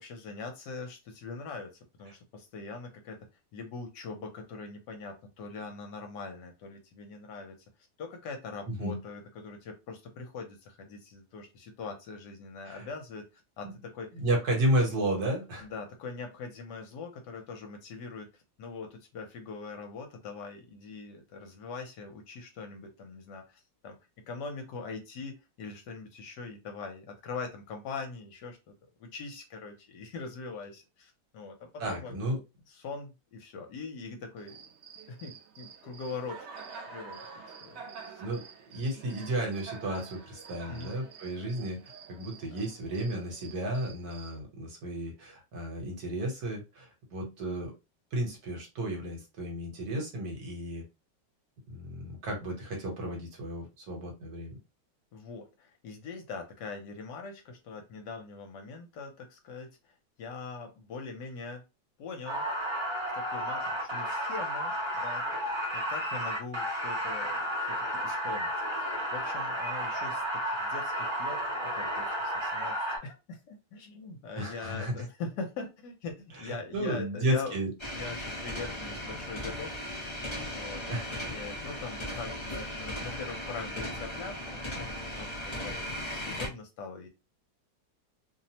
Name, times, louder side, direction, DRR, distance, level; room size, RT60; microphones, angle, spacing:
voice 1, 0.0-3.2 3.5-7.6 8.0-14.1 15.6-24.0 24.3-28.7 29.0-32.2 32.7-34.6 35.1-36.5 36.9-38.2 40.7-41.0 55.1-59.9 60.2-61.6 62.0-62.5 63.1-68.5 68.8-77.6 77.9-79.7 80.5-80.8 81.3-87.1, left 4 dB, 75° left, 4 dB, 1.2 m, -42 dB
voice 2, 8.7-9.0 12.7-12.9 13.6-13.7 14.1-15.7 31.8-32.4 38.2-38.4 38.7-41.8 42.1-47.7 48.1-50.8 51.7-54.6 74.3-75.0 76.4-77.7 80.9-81.2, right 1 dB, 60° right, 1 dB, 1.3 m, -33 dB
Cricket, 34.4-44.4, right 6 dB, 80° right, 0.6 m, -48 dB
sound 1, 62.2-73.0, equal, 30° right, 0.5 m, -32 dB
sound 2, 77.8-86.5, left 1 dB, 40° left, 0.4 m, -37 dB
3.1 x 2.0 x 2.7 m, 0.26 s
omnidirectional pair, 2.0 m